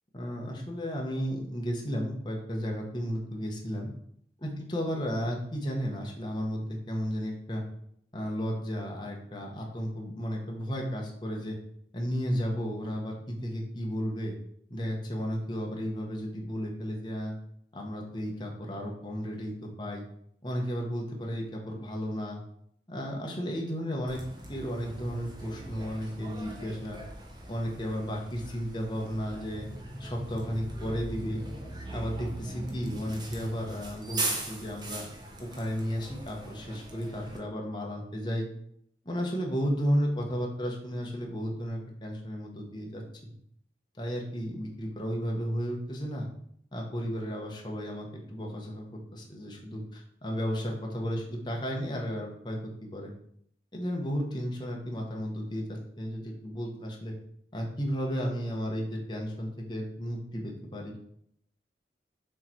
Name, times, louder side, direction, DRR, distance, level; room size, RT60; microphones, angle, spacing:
voice 1, 0.1-3.9 4.4-7.6 8.1-11.6 11.9-14.3 14.7-17.4 17.7-20.0 20.4-22.4 22.9-24.2 24.5-27.0 27.5-29.7 30.0-31.4 31.9-35.0 35.4-38.5 39.0-43.0 44.0-46.3 46.7-48.9 49.1-53.1 53.7-57.1 57.5-60.9, equal, 25° left, -1 dB, 1.1 m, -33 dB
Bus, 24.1-37.4, right 2 dB, 25° right, 0.8 m, -40 dB
6.5 x 3.2 x 4.4 m, 0.69 s
head